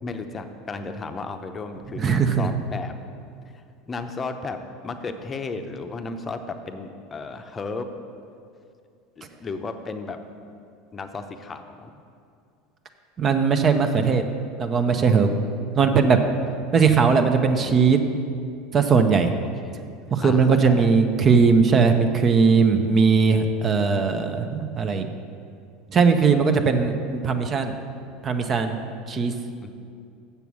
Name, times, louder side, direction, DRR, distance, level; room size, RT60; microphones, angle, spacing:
voice 1, 0.0-2.9 3.9-4.6 4.8-7.9 9.2-10.2 10.9-12.0 19.6-19.8 20.2-20.8 29.6-29.7, left 4 dB, 25° left, 7 dB, 0.7 m, -34 dB
voice 2, 2.0-2.5 13.2-14.2 14.6-15.3 15.8-16.2 16.7-18.0 18.7-19.3 20.1-25.1 25.9-27.7 28.2-28.8 29.1-29.3, right 5 dB, 35° right, 7 dB, 0.7 m, -19 dB
7.0 x 6.9 x 6.2 m, 2.4 s
supercardioid pair, 105°, 0 cm